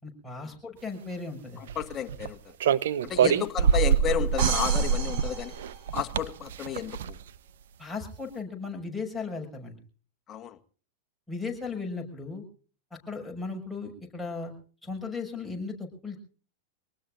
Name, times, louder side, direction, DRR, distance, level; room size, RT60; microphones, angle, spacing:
voice 1, 0.0-1.7 3.2-3.3 7.8-9.8 11.3-12.4 13.1-14.5 14.8-16.2, left 4 dB, ahead, -1 dB, 6.3 m, -36 dB
voice 2, 1.6-2.4 3.1-5.5 5.9-7.2 10.3-10.6, left 9 dB, 30° left, 6 dB, 1.7 m, -32 dB
sound 1, 1.7-2.3 2.6-7.3, right 7 dB, 75° right, 1.0 m, -25 dB
sound 2, 4.4-6.3, right 7 dB, 55° right, 5.0 m, -34 dB
25.5 x 19.5 x 2.6 m, 0.40 s
hypercardioid pair, 110°, 0 cm